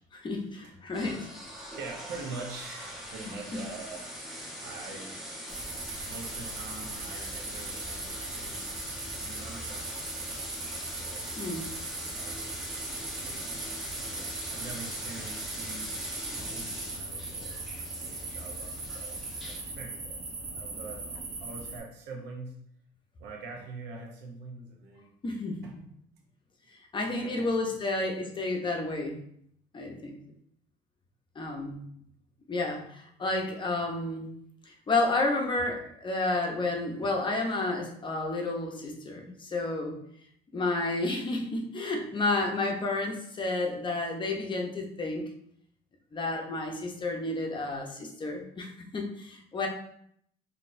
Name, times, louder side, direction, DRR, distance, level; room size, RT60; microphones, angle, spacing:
voice 1, 0.1-1.2 11.4-11.7 25.2-25.6 26.9-29.2 29.7-30.3 31.4-31.8 32.5-34.3 34.7-40.0 40.5-45.3 46.1-49.7, left 2 dB, 30° left, 1 dB, 0.7 m, -31 dB
voice 2, 0.6-1.1 1.7-4.2 4.5-5.3 5.8-10.4 10.9-11.3 12.1-12.5 13.2-17.6 18.0-20.2 20.5-22.7 23.2-25.1 25.6-25.7 27.1-27.8, right 3 dB, 90° right, 1 dB, 0.8 m, -45 dB
sound 1, 0.9-19.6, equal, ahead, 1.1 m, -41 dB
sound 2, 5.5-21.8, right 3 dB, 55° right, 1.0 m, -39 dB
3.9 x 2.7 x 2.6 m, 0.69 s
cardioid pair, 110°, 17 cm